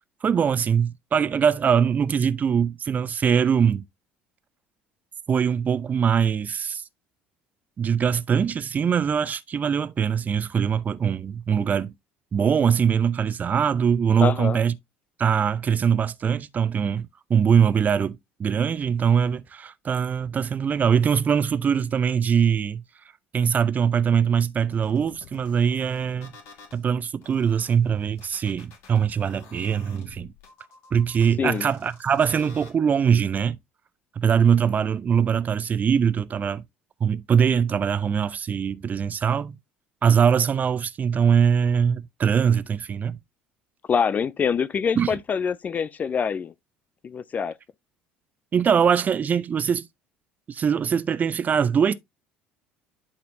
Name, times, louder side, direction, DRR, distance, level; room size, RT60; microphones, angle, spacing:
voice 1, 0.2-3.9 5.3-6.8 7.8-11.9 12.3-14.7 15.2-22.8 23.3-26.3 26.7-30.3 30.9-33.6 34.2-36.6 37.0-39.6 40.0-43.2 45.0-45.1 48.5-49.9 50.5-51.9, right 7 dB, 30° right, 0.6 m, -22 dB
voice 2, 14.2-14.6 31.4-31.7 43.9-46.5 47.0-47.6, left 6 dB, 30° left, 0.4 m, -25 dB
sound 1, 24.7-26.8 27.2-32.7, left 5 dB, 55° left, 1.9 m, -49 dB
11.5 x 4.3 x 2.6 m
figure-of-eight pair, 60°, 5 cm